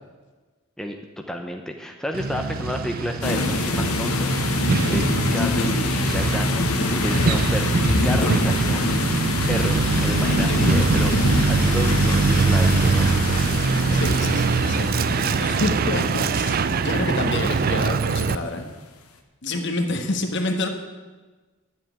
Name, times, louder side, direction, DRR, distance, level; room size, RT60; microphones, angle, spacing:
voice 1, 1.3-13.4, equal, ahead, 3 dB, 0.7 m, -31 dB
Truck, 2.1-18.3, right 4 dB, 40° right, 0.4 m, -23 dB
sound 1, 3.2-17.8, left 3 dB, 90° left, 1.3 m, -25 dB
voice 2, 5.4-5.7 10.5-10.6 13.9-15.1 15.4-18.7 19.4-20.7, left 2 dB, 55° left, 5 dB, 1.4 m, -28 dB
sound 2, 9.5-17.4, left 1 dB, 70° left, 2.0 m, -37 dB
10.5 x 7.5 x 8.9 m, 1.3 s
head